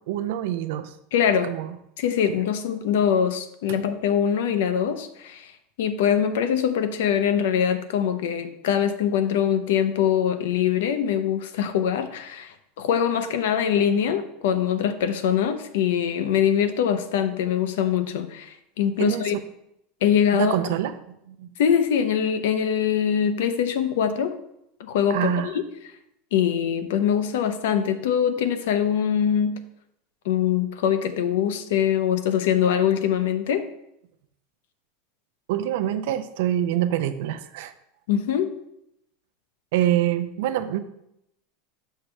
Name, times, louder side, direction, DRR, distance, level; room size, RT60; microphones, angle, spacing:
voice 1, 0.1-0.9 1.4-1.8 19.0-19.3 20.3-20.9 21.3-21.5 25.1-25.6 35.5-37.7 39.7-40.8, right 11 dB, 75° right, 11 dB, 0.5 m, -25 dB
voice 2, 1.1-1.5 2.0-5.5 5.8-19.3 20.0-20.6 21.6-24.4 24.8-25.6 26.3-29.6 30.3-33.7 38.1-38.6, left 8 dB, 80° left, 9 dB, 0.6 m, -23 dB
6.6 x 3.2 x 5.9 m, 0.80 s
supercardioid pair, 155°, 0 cm